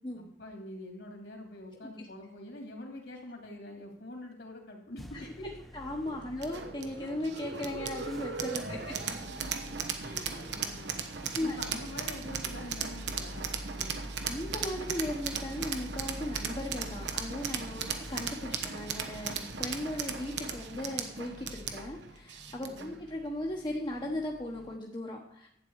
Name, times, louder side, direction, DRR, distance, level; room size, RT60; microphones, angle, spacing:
voice 1, 0.2-5.5 10.2-10.9 11.2-14.1 17.7-17.9 22.6-23.0, left 1 dB, 65° left, 2 dB, 3.0 m, -45 dB
sound 1, 5.0-24.8, equal, ahead, 0.8 m, -47 dB
voice 2, 5.7-9.0 10.0-10.5 11.3-11.6 14.2-25.5, left 1 dB, 25° left, -1 dB, 1.2 m, -37 dB
sound 2, 6.4-23.0, right 6 dB, 75° right, 1.2 m, -37 dB
11.5 x 8.6 x 4.8 m, 0.73 s
head